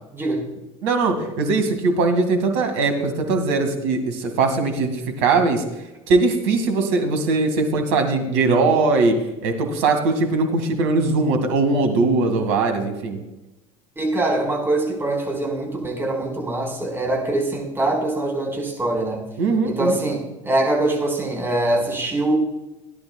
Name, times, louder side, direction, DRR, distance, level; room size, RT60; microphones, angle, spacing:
voice 1, 0.1-0.4 13.9-19.2 19.6-22.3, right 2 dB, 15° right, -1 dB, 4.7 m, -23 dB
voice 2, 0.8-5.6 6.1-9.2 9.4-13.2 19.4-20.0, right 3 dB, 65° right, 6 dB, 2.0 m, -20 dB
18.0 x 10.5 x 2.3 m, 0.98 s
figure-of-eight pair, 70°, 17 cm